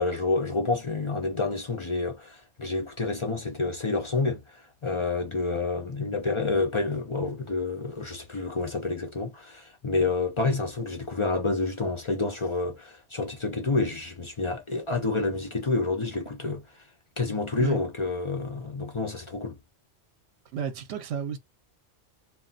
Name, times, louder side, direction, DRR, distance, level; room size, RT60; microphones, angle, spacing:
voice 1, 0.0-16.6 17.2-19.6, left 3 dB, 40° left, 0.5 m, -28 dB
voice 2, 20.5-21.4, right 7 dB, 65° right, 0.9 m, -31 dB
2.2 x 2.2 x 3.8 m
omnidirectional pair, 1.2 m